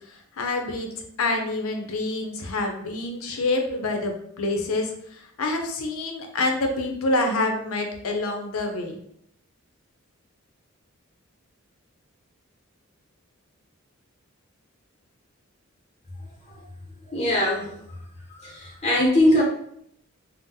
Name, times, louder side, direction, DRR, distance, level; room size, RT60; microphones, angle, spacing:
voice 1, 0.4-0.9 1.2-4.9 5.4-9.0, left 2 dB, 80° left, 4 dB, 0.6 m, -26 dB
voice 2, 17.1-17.7 18.4-19.4, left 1 dB, 30° left, -4 dB, 0.6 m, -21 dB
3.7 x 2.0 x 2.7 m, 0.70 s
head